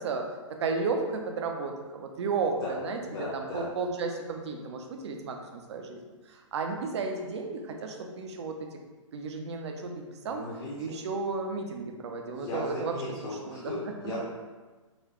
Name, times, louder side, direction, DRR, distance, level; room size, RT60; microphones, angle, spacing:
voice 1, 0.0-6.0 6.3-8.8 9.1-10.4 10.8-12.9 13.5-14.2, right 4 dB, 55° right, 3 dB, 0.5 m, -33 dB
voice 2, 3.1-3.6 10.3-10.8 12.3-14.2, left 2 dB, 45° left, -8 dB, 0.8 m, -37 dB
4.0 x 2.2 x 3.0 m, 1.3 s
figure-of-eight pair, 125°, 17 cm